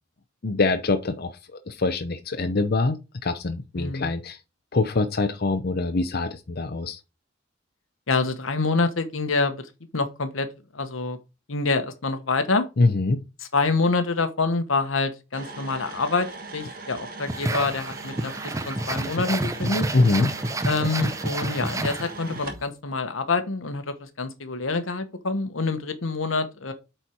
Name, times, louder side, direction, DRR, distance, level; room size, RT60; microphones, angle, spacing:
voice 1, 0.4-1.3 1.7-4.4 4.7-7.0 12.8-13.2 19.9-20.3, left 3 dB, 50° left, 0.7 m, -24 dB
voice 2, 3.7-4.1 8.1-10.5 10.7-11.2 11.5-12.7 13.4-18.3 18.7-19.9 20.6-26.7, left 3 dB, 90° left, 1.2 m, -26 dB
sound 1, 15.3-22.6, right 3 dB, 50° right, 1.4 m, -39 dB
sound 2, 17.3-22.5, right 2 dB, 15° right, 0.5 m, -29 dB
8.1 x 4.5 x 4.4 m
head